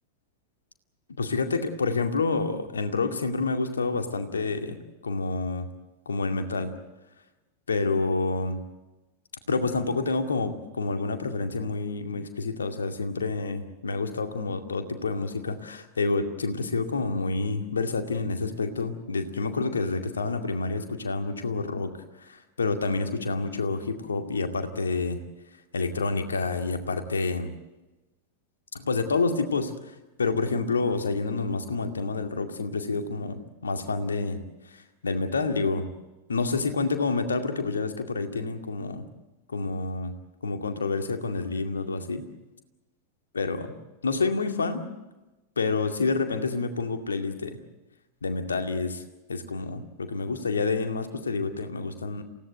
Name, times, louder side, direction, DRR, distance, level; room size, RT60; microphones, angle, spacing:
voice 1, 1.2-4.8 5.0-5.7 6.1-6.7 7.7-8.6 9.5-21.9 22.2-25.2 25.7-27.5 28.7-35.9 36.3-39.0 39.5-40.1 40.4-42.2 43.3-43.7 44.0-44.8 45.6-47.6 48.2-49.0 49.3-52.2, left 3 dB, 70° left, 5 dB, 2.3 m, -28 dB
28.5 x 17.5 x 8.2 m, 1.1 s
figure-of-eight pair, 90°, 0 cm